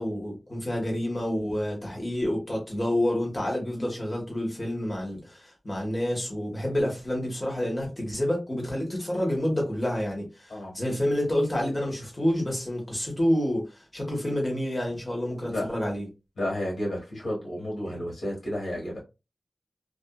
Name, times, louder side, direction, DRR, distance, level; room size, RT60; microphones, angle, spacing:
voice 1, 0.0-16.1, left 1 dB, 25° left, 1.2 m, -28 dB
voice 2, 16.4-19.0, left 1 dB, 90° left, 1.4 m, -31 dB
2.5 x 2.5 x 2.2 m
wide cardioid pair, 90°, 0 cm